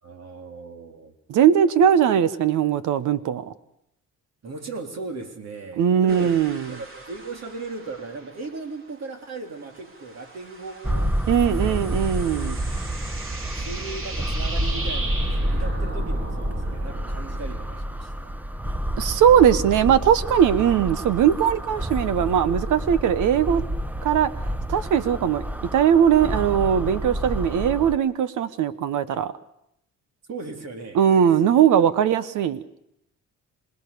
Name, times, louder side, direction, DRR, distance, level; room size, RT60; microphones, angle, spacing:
voice 1, 0.0-1.1 4.4-6.3 6.7-11.2 11.4-11.8 13.5-18.3 30.3-31.2 31.4-31.5 32.0-32.1, right 3 dB, 60° right, 4 dB, 3.6 m, -37 dB
voice 2, 1.3-3.5 5.8-6.8 11.3-12.6 19.0-23.6 24.0-24.3 24.7-25.5 25.7-29.3 30.9-32.6, right 9 dB, 85° right, 14 dB, 1.3 m, -20 dB
sound 1, 6.1-9.0 9.3-17.8, right 2 dB, 45° right, 3.3 m, -39 dB
sound 2, 10.8-28.0, right 1 dB, 5° right, 1.0 m, -29 dB
27.0 x 19.5 x 6.9 m, 0.77 s
cardioid pair, 90°, 30 cm